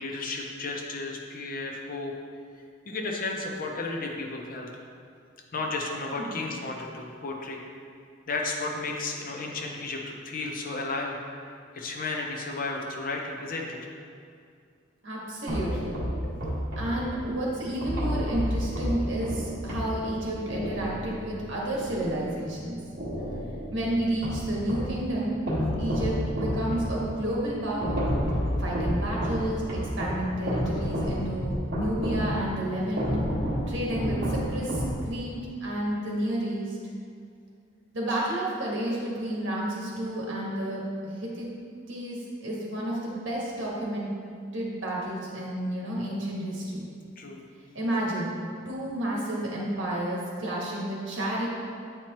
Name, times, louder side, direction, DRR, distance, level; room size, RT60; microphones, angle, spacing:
voice 1, 0.0-2.1 2.9-4.7 5.5-7.6 8.3-11.2 11.7-13.8 16.2-16.5 23.2-23.5 47.2-47.4, left 3 dB, 45° left, 1 dB, 0.7 m, -33 dB
voice 2, 6.1-6.4 15.0-16.0 16.8-22.8 23.7-25.4 25.8-28.0 28.6-33.1 33.7-35.3 35.6-36.8 37.9-41.5 41.9-44.1 44.5-46.8 47.7-48.4 48.6-51.5, right 1 dB, 70° right, -4 dB, 1.5 m, -31 dB
sound 1, 15.5-22.6 23.0-25.0 25.5-35.4, equal, 55° right, 1.5 m, -31 dB
8.3 x 4.4 x 3.0 m, 2.3 s
head